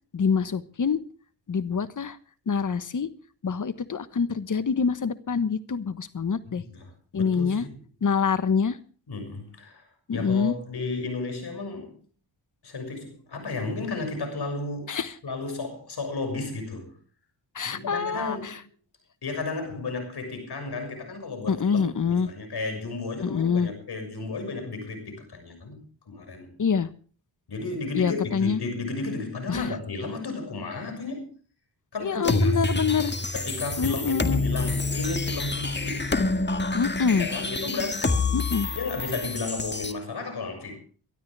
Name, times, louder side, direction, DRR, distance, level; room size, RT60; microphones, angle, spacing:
voice 1, 0.1-1.0 1.5-2.2 2.5-3.1 3.4-6.6 7.1-7.6 8.0-8.8 10.1-10.5 14.9-15.1 17.5-18.6 21.5-22.3 23.2-23.7 26.6-26.9 27.9-28.6 29.5-29.7 32.0-33.1 33.8-34.4 36.7-37.3 38.3-38.7, left 6 dB, 45° left, 1.3 m, -25 dB
voice 2, 6.5-7.8 9.1-12.0 12.6-14.9 15.2-17.0 17.6-18.7 19.2-26.5 27.5-31.3 31.9-32.6 33.3-36.2 37.1-38.3 38.7-40.8, left 3 dB, 60° left, 6.6 m, -33 dB
sound 1, 32.2-39.9, left 2 dB, 25° left, 1.8 m, -27 dB
23.5 x 12.5 x 3.4 m
cardioid pair, 80°, 44 cm